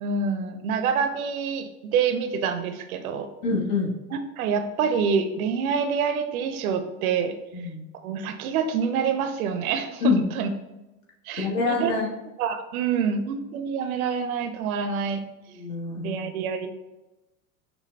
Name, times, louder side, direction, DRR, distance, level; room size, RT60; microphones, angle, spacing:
voice 1, 0.0-3.3 4.1-7.4 8.0-10.5 11.3-11.9 12.4-15.2 16.0-16.7, right 6 dB, 60° right, 8 dB, 0.6 m, -26 dB
voice 2, 3.4-3.9 7.5-7.8 10.0-10.2 11.4-12.1 15.5-16.2, left 4 dB, 55° left, -2 dB, 1.3 m, -25 dB
6.0 x 2.2 x 3.2 m, 1.0 s
figure-of-eight pair, 70°, 48 cm